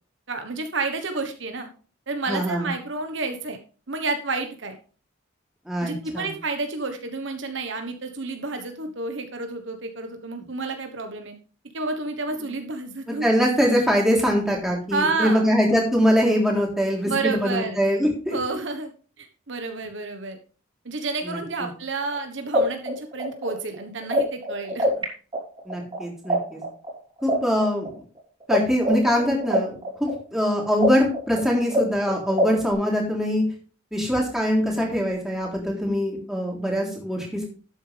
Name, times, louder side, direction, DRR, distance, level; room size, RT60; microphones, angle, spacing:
voice 1, 0.3-1.7 2.1-3.6 3.9-4.8 5.8-11.3 11.7-13.5 14.9-15.5 17.0-17.8 18.3-18.9 19.2-20.4 20.8-25.0, right 3 dB, 65° right, 6 dB, 1.3 m, -30 dB
voice 2, 2.3-2.7 5.7-6.3 13.2-18.4 21.2-21.4 25.7-26.6 27.2-27.9 28.5-33.4 33.9-37.5, equal, ahead, -2 dB, 3.5 m, -23 dB
sound 1, 22.1-22.2 22.5-25.0 25.3-28.6 28.8-32.7, right 1 dB, 25° right, 3.6 m, -24 dB
12.0 x 8.8 x 3.4 m, 0.39 s
head